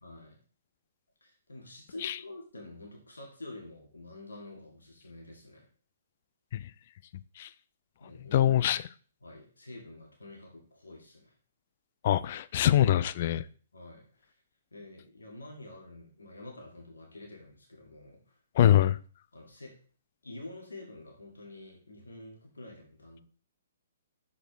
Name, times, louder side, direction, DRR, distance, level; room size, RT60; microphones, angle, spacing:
voice 1, 0.0-0.4 1.2-5.7 8.0-8.7 9.2-11.3 13.7-14.3 14.7-18.3 19.3-19.8 20.2-23.2, left 2 dB, 75° left, 2.0 m, -48 dB
voice 2, 8.3-8.8 12.0-13.4 18.6-19.0, left 12 dB, 45° left, 0.4 m, -23 dB
6.7 x 4.4 x 4.6 m
figure-of-eight pair, 120°, 0 cm